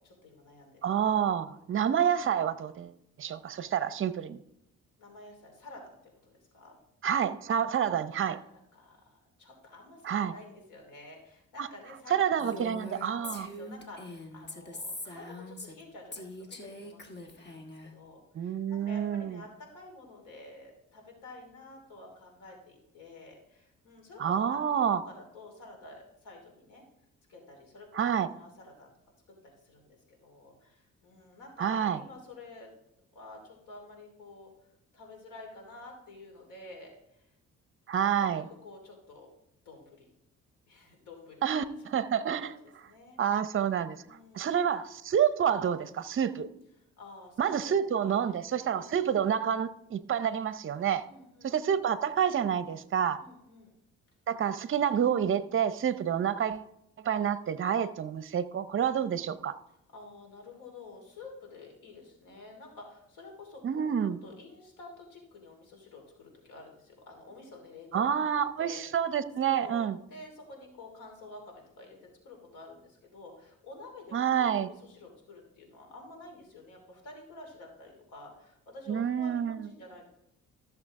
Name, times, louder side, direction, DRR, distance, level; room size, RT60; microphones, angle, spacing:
voice 1, 0.0-0.8 5.0-5.9 6.2-6.8 8.4-12.6 13.2-26.8 27.3-27.9 28.2-28.9 29.3-32.7 33.1-34.5 34.9-37.3 38.2-39.3 39.6-40.1 40.7-41.6 42.3-43.2 44.0-44.6 46.8-48.2 48.6-48.9 51.0-51.8 53.2-53.7 59.9-63.9 64.2-68.1 68.6-68.8 69.5-80.0, left 2 dB, 90° left, 2 dB, 2.9 m, -50 dB
voice 2, 0.8-2.9 3.2-4.4 7.0-8.4 10.0-10.3 11.6-11.7 12.1-13.5 18.3-19.4 24.2-25.0 27.9-28.3 31.6-32.0 37.9-38.5 41.4-41.7 41.9-42.5 43.2-44.0 44.3-46.5 47.4-51.1 51.4-53.2 54.3-56.7 57.0-59.6 63.6-64.2 67.9-70.0 74.1-74.7 78.9-79.6, right 8 dB, 45° right, 13 dB, 0.7 m, -28 dB
Female speech woman speaking, 12.4-15.8 16.1-17.9, left 1 dB, 35° left, 1.5 m, -42 dB
13.5 x 6.8 x 3.6 m, 0.81 s
cardioid pair, 90°, 30 cm